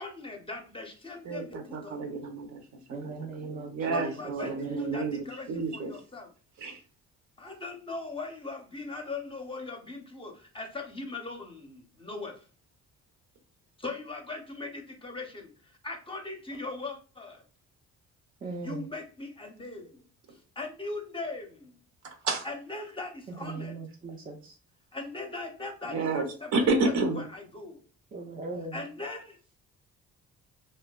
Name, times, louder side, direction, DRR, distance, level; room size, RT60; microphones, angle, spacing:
voice 1, 0.0-2.2 3.9-6.3 7.4-12.5 13.8-17.4 18.6-20.0 20.3-21.8 22.4-23.7 24.9-26.5 26.8-27.8 28.7-29.6, left 3 dB, 20° left, 0.6 m, -40 dB
voice 2, 1.2-2.6 3.0-3.1 3.4-5.9 6.6-6.8 22.0-22.5 25.9-26.3 26.5-27.2, right 3 dB, 65° right, 0.7 m, -30 dB
voice 3, 2.9-4.1 4.4-5.0 18.4-18.9 23.4-24.5 28.1-28.8, right 3 dB, 30° right, 0.4 m, -39 dB
2.6 x 2.2 x 2.2 m
cardioid pair, 90°, 30 cm